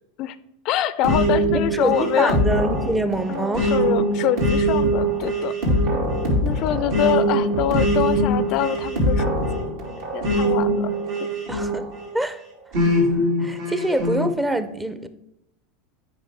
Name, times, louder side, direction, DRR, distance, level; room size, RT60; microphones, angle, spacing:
voice 1, 0.6-2.4 3.3-5.5 6.4-10.9, left 11 dB, 55° left, 15 dB, 0.3 m, -25 dB
sound 1, 1.0-12.1 12.7-14.3, right 1 dB, 70° right, 2.6 m, -22 dB
voice 2, 1.8-3.7 5.6-5.9 11.5-11.9 12.1-12.4 12.8-12.9 13.4-15.1, right 1 dB, 10° right, 11 dB, 0.5 m, -25 dB
8.7 x 5.2 x 3.6 m, 0.84 s
hypercardioid pair, 100°, 0 cm